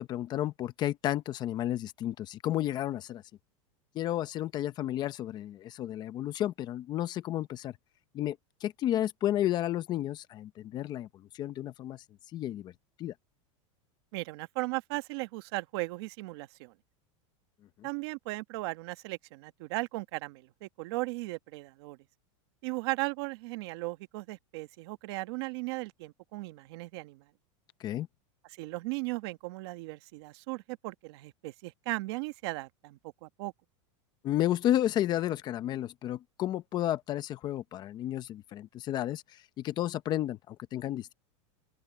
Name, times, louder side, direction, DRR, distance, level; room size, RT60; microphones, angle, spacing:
voice 1, 0.0-3.2 3.9-7.7 8.1-11.1 11.3-12.0 12.3-12.7 13.0-13.1 27.8-28.1 34.2-41.1, left 12 dB, 25° left, 0.8 m, -32 dB
voice 2, 14.1-16.7 17.8-22.0 22.6-27.2 28.4-33.5, right 22 dB, 55° right, 1.4 m, -37 dB
open air
supercardioid pair, 160°, 16 cm